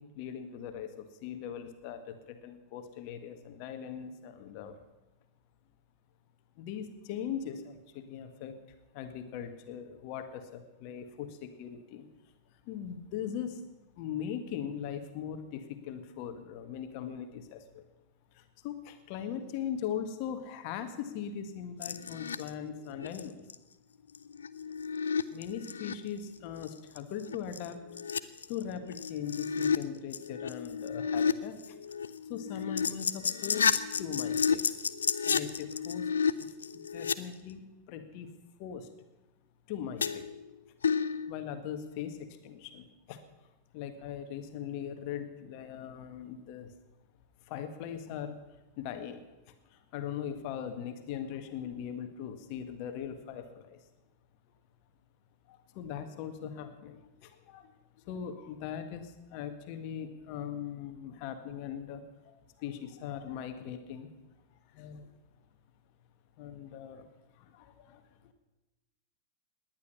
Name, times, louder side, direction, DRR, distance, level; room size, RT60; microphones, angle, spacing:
voice 1, 0.0-4.8 6.6-8.6 8.9-12.1 12.7-13.6 14.0-17.8 18.3-23.4 25.3-27.8 28.2-31.8 32.1-34.6 35.2-36.1 36.4-36.5 36.9-38.3 38.6-38.9 39.7-40.3 41.3-43.2 43.7-46.7 47.4-48.4 48.8-53.8 55.5-57.7 58.0-64.1 64.7-65.1 66.4-67.1 67.3-68.3, left 8 dB, 45° left, 8 dB, 1.7 m, -40 dB
sound 1, 21.8-22.5 22.9-23.2 23.5-23.6 24.1-25.9 26.5-26.7 27.0-27.1 27.3-29.8 30.1-31.3 31.6-37.1 40.0-40.5 40.8-41.3, left 6 dB, 70° left, 0.6 m, -31 dB
18.5 x 10.5 x 6.5 m, 1.1 s
figure-of-eight pair, 90°, 0 cm